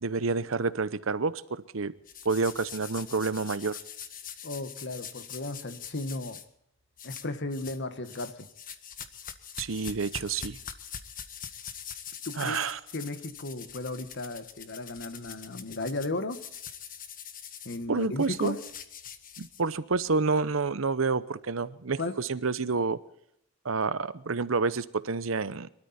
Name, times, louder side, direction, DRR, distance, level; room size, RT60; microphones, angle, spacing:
voice 1, 0.0-1.9 2.2-3.8 9.6-10.6 12.4-12.8 17.9-18.6 19.4-23.0 23.6-25.7, right 4 dB, 70° right, 15 dB, 0.8 m, -29 dB
sound 1, 2.1-6.4 7.0-7.8 8.0-19.9, left 7 dB, 45° left, 1.4 m, -43 dB
voice 2, 4.4-6.4 7.0-8.5 12.2-12.6 12.9-16.4 17.6-18.6 22.0-22.2, left 2 dB, 60° left, 10 dB, 1.5 m, -35 dB
23.5 x 13.0 x 4.3 m, 0.75 s
head